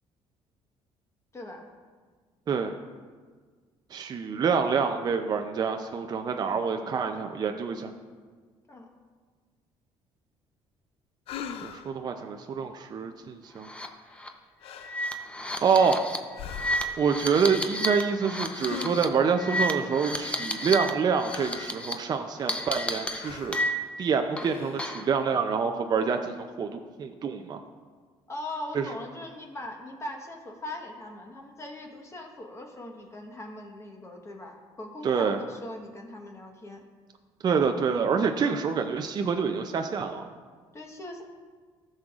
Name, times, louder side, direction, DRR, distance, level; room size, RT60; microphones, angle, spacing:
voice 1, 1.3-1.7 8.7-8.9 28.3-36.8 38.4-38.8 40.7-41.2, left 1 dB, 25° left, 1 dB, 1.2 m, -40 dB
voice 2, 3.9-7.9 11.6-13.7 15.6-16.0 17.0-23.6 24.0-27.6 28.7-28.9 35.0-35.4 37.4-40.2, right 6 dB, 40° right, 5 dB, 0.5 m, -27 dB
sound 1, 11.3-12.0 14.1-14.3 14.6-15.0 15.4-16.0 16.3-17.1 18.6-19.3 20.5-21.8 22.3-22.9 23.2-23.7 24.3-24.9, left 8 dB, 65° left, 0.5 m, -42 dB
sound 2, 13.6-13.9 14.2-14.3 14.8-20.9 21.2-21.9 22.5-24.0 24.4-25.1, left 1 dB, 10° left, 0.7 m, -32 dB
14.0 x 6.4 x 2.4 m, 1.5 s
cardioid pair, 105°, 11 cm